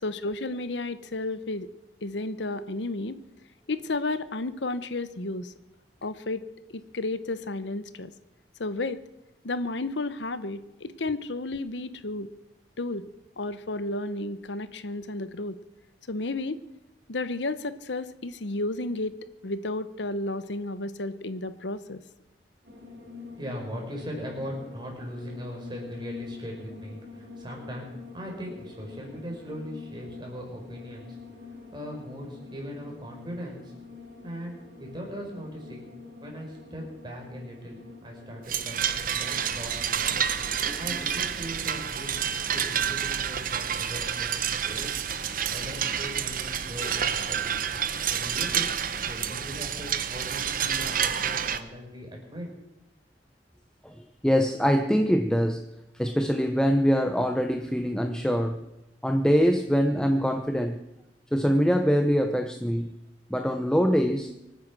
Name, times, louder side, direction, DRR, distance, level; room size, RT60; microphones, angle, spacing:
voice 1, 0.0-1.7 2.0-3.2 3.7-5.5 6.0-6.5 6.7-8.1 8.6-9.0 9.4-12.3 12.8-13.0 13.4-15.6 16.1-16.6 17.1-19.1 19.4-22.0, left 2 dB, 85° left, 13 dB, 1.0 m, -32 dB
sound 1, 22.6-41.9, left 4 dB, 70° right, 4.6 m, -47 dB
voice 2, 23.4-27.9 28.1-31.2 31.7-33.7 34.2-35.9 36.2-40.2 40.7-42.1 42.5-44.9 45.5-47.6 48.1-48.7 49.0-52.5, equal, 25° right, 0 dB, 5.1 m, -39 dB
sound 2, 38.5-51.6, right 8 dB, 50° right, 0.9 m, -29 dB
voice 3, 54.2-55.6 55.9-58.6 59.0-60.8 61.3-62.9 63.3-64.3, equal, 5° left, 6 dB, 0.8 m, -24 dB
24.5 x 9.5 x 6.2 m, 0.91 s
head